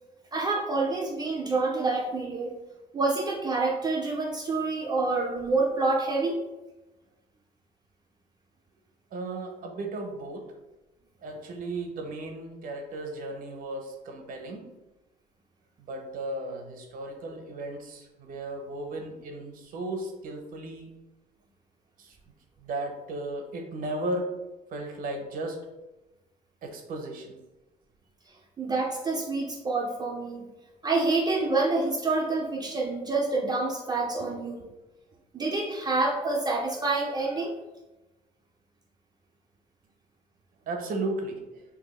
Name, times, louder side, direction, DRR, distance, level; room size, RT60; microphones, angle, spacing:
voice 1, 0.3-2.5 2.9-6.4 28.6-30.4 30.8-34.6 35.3-37.5, right 3 dB, 25° right, -2 dB, 0.4 m, -27 dB
voice 2, 9.1-10.5 11.2-14.7 15.8-20.9 22.0-22.2 22.6-24.3 24.7-25.6 26.6-27.4 34.2-34.3 40.7-41.6, right 2 dB, 55° right, 3 dB, 0.7 m, -35 dB
2.7 x 2.6 x 4.1 m, 1.0 s
cardioid pair, 110°, 17 cm